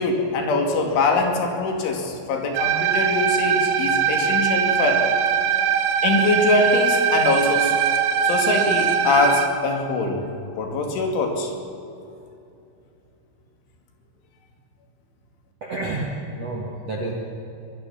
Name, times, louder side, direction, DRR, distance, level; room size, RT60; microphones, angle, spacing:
voice 1, 0.0-5.1 6.0-7.8 8.2-10.2 10.6-11.5, left 3 dB, 70° left, 3 dB, 4.7 m, -22 dB
sound 1, 2.6-9.5, right 8 dB, 85° right, 4.2 m, -21 dB
voice 2, 15.6-17.1, right 2 dB, 50° right, -1 dB, 2.0 m, -29 dB
24.5 x 20.0 x 7.3 m, 2.7 s
omnidirectional pair, 5.9 m